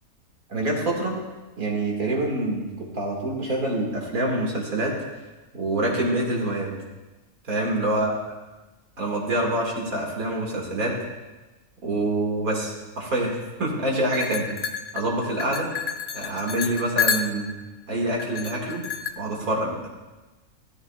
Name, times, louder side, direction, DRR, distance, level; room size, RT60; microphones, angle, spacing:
voice 1, 0.5-1.2 1.6-5.0 5.5-6.7 7.5-8.1 9.0-10.9 11.8-14.5 14.9-15.7 16.1-17.5 17.9-18.8 19.2-19.9, right 1 dB, 80° right, -2 dB, 2.6 m, -26 dB
sound 1, 14.1-17.6 18.2-19.1, left 7 dB, 55° left, 0.5 m, -29 dB
16.5 x 13.0 x 2.4 m, 1.2 s
omnidirectional pair, 1.5 m